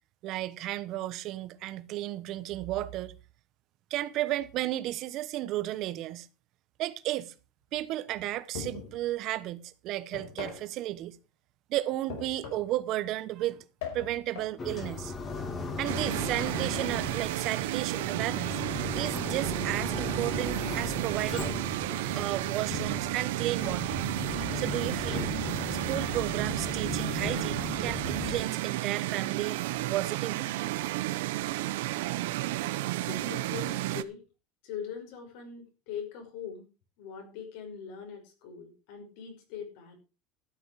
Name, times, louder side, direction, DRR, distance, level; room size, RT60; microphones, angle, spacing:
voice 1, 0.2-3.1 3.9-6.3 6.8-7.3 7.7-11.2 11.7-13.6 13.9-15.1 15.8-18.6 19.0-21.6 22.1-24.0 24.5-25.3 25.7-30.5, right 15 dB, 40° right, 1.0 m, -33 dB
sound 1, 8.5-9.0 10.1-10.7 12.1-12.8 13.8-14.6, left 6 dB, 85° left, 4.9 m, -40 dB
sound 2, 14.6-28.4, left 4 dB, 20° left, 2.1 m, -37 dB
sound 3, 15.8-34.0, right 16 dB, 90° right, 0.9 m, -32 dB
voice 2, 33.0-34.2 34.6-36.7 37.0-40.0, left 7 dB, 60° left, 5.5 m, -41 dB
13.0 x 10.0 x 4.8 m
cardioid pair, 175°, 0 cm